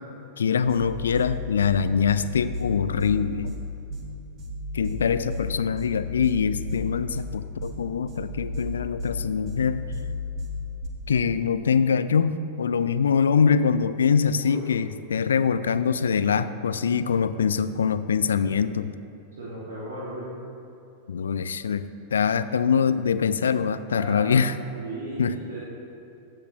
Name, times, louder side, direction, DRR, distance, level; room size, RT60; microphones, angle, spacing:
voice 1, 0.4-3.5 4.7-9.8 11.1-18.9 21.1-24.5 25.2-25.3, left 6 dB, 70° left, 13 dB, 0.3 m, -24 dB
sound 1, 0.6-10.9, left 3 dB, 35° right, 1.2 m, -33 dB
voice 2, 14.3-14.7 19.4-20.3 23.9-24.4 24.7-25.6, right 2 dB, 65° right, -7 dB, 1.6 m, -36 dB
15.0 x 6.5 x 2.9 m, 2.7 s
figure-of-eight pair, 90°, 0 cm